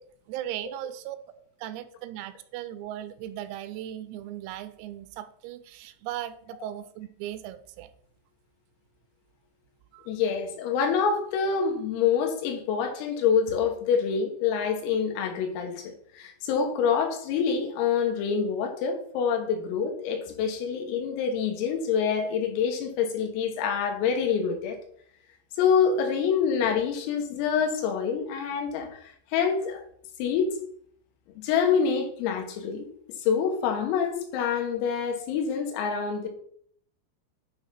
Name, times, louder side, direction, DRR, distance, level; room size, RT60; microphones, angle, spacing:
voice 1, 0.3-1.2 1.6-7.9 9.9-10.1, right 12 dB, 90° right, 3.4 m, -37 dB
voice 2, 10.1-24.8 25.6-29.8 30.2-30.5 31.4-32.9 33.2-36.3, left 6 dB, 80° left, 3.8 m, -26 dB
9.6 x 3.5 x 5.6 m
omnidirectional pair, 5.9 m